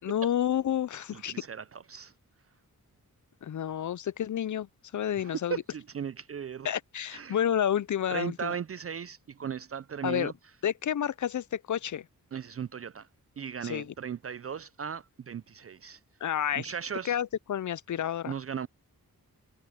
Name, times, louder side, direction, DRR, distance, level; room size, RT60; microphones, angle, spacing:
voice 1, 0.0-1.4 3.4-4.7 4.9-5.5 6.6-8.5 10.0-10.3 10.6-12.0 13.6-13.9 16.2-16.6 17.1-18.3, left 10 dB, 55° left, 0.5 m, -30 dB
voice 2, 1.1-2.1 5.2-6.7 7.1-7.4 8.1-10.3 12.3-13.1 13.4-16.0 16.5-17.2 18.3-18.7, right 7 dB, 40° right, 0.4 m, -37 dB
wide cardioid pair, 100°, 36 cm